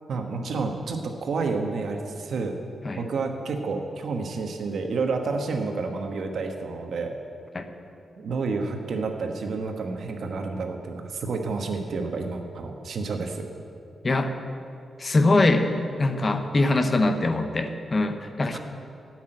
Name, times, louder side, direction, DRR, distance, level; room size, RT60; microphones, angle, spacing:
voice 1, 0.1-2.5 3.0-7.1 8.2-13.4 18.5-18.6, right 4 dB, 60° right, 4 dB, 1.2 m, -30 dB
voice 2, 15.0-15.7 16.0-18.6, left 2 dB, 30° left, 7 dB, 0.8 m, -22 dB
13.5 x 6.1 x 8.8 m, 2.6 s
wide cardioid pair, 165°, 0 cm